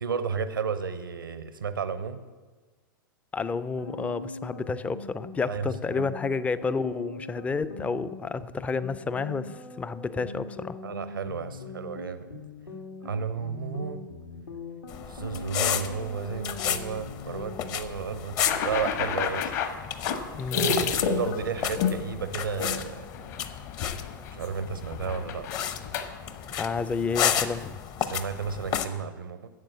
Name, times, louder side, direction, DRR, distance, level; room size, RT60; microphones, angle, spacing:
voice 1, 0.0-2.2 5.5-5.7 5.9-6.1 10.8-12.3 13.0-14.0 15.1-19.5 21.0-23.1 24.3-25.5 28.0-29.5, right 6 dB, 80° right, 11 dB, 0.7 m, -33 dB
voice 2, 3.3-10.8 20.3-20.9 26.6-27.8, left 4 dB, 10° left, 15 dB, 0.4 m, -30 dB
sound 1, 3.8-17.7, left 2 dB, 80° left, 2.1 m, -41 dB
squeaky shoes, 14.9-28.8, left 9 dB, 35° left, 0.8 m, -33 dB
sound 2, 18.5-22.0 22.6-22.8 23.1-23.4 23.7-24.5 24.8-26.1, left 6 dB, 50° left, 1.4 m, -29 dB
11.0 x 7.7 x 7.4 m, 1.3 s
figure-of-eight pair, 100°, 11 cm